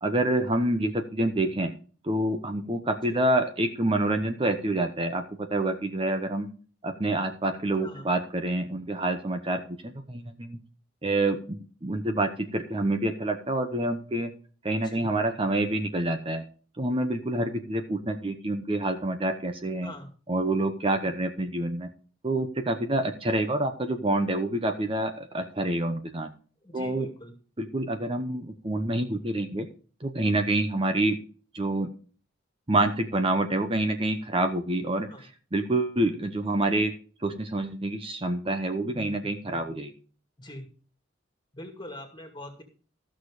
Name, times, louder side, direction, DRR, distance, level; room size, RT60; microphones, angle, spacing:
voice 1, 0.0-1.7 2.0-6.5 6.8-10.6 11.0-14.3 14.6-16.4 16.8-19.9 20.3-21.9 22.2-26.3 26.7-27.1 27.6-29.7 30.0-31.2 31.5-31.9 32.7-36.9 37.2-39.9, right 1 dB, 25° right, 6 dB, 0.9 m, -27 dB
voice 2, 26.6-27.3 35.1-35.3 40.4-40.7 41.5-42.6, left 1 dB, 20° left, 5 dB, 2.2 m, -43 dB
15.0 x 6.4 x 4.9 m, 0.40 s
head